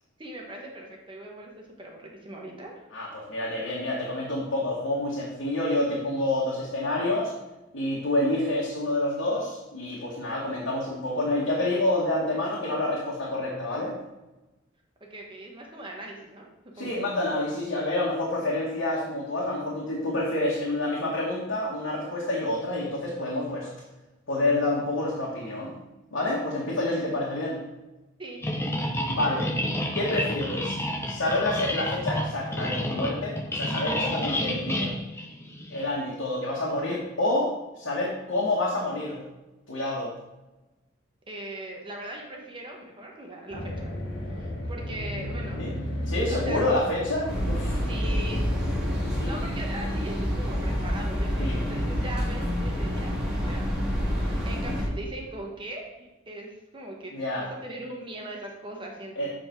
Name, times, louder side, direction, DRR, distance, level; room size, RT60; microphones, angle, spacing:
voice 1, 0.2-2.9 15.0-16.5 16.8-16.9 28.2-28.7 41.3-43.9 44.3-45.6 46.3-46.6 47.7-48.5 49.2-59.3, right 1 dB, 25° right, 0 dB, 1.1 m, -40 dB
voice 2, 2.9-7.3 7.7-13.9 16.7-23.7 24.3-25.7 26.1-27.6 29.1-29.5 29.9-34.9 35.7-39.2 39.7-40.1 45.6-45.7 46.1-47.9 49.2-49.3 51.4-51.6 57.1-57.5 59.2-59.3, left 1 dB, 85° left, -5 dB, 1.7 m, -28 dB
sound 1, 28.4-35.9, left 1 dB, 15° left, 0.8 m, -30 dB
sound 2, 43.5-49.2, equal, 65° left, 1.5 m, -33 dB
sound 3, 47.3-54.9, equal, 5° right, 2.2 m, -28 dB
7.8 x 5.2 x 4.6 m, 1.1 s
head